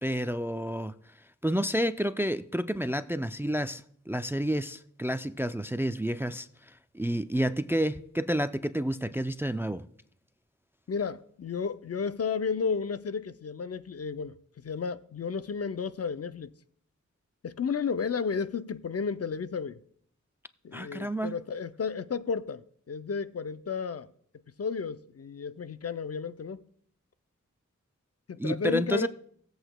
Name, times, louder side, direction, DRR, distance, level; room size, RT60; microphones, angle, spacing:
voice 1, 0.0-1.0 1.4-6.5 6.9-9.8 20.7-21.4 28.4-29.1, equal, 10° right, 0.3 m, -30 dB
voice 2, 10.9-14.3 14.6-16.5 17.4-19.8 20.6-24.1 24.6-26.6 28.3-29.1, left 5 dB, 55° left, 0.5 m, -32 dB
18.0 x 7.9 x 2.2 m
wide cardioid pair, 55°, 30 cm